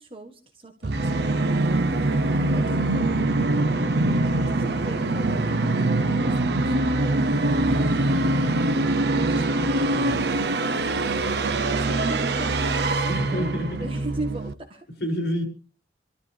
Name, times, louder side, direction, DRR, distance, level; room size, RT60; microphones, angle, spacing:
voice 1, 0.0-9.5 11.0-14.9, right 2 dB, 30° right, 3 dB, 1.5 m, -40 dB
Musical instrument, 0.8-14.5, right 2 dB, 65° right, 0.7 m, -23 dB
voice 2, 9.3-10.5 13.1-13.9 15.0-15.4, equal, 70° left, 4 dB, 6.5 m, -30 dB
27.5 x 13.0 x 3.4 m, 0.37 s
head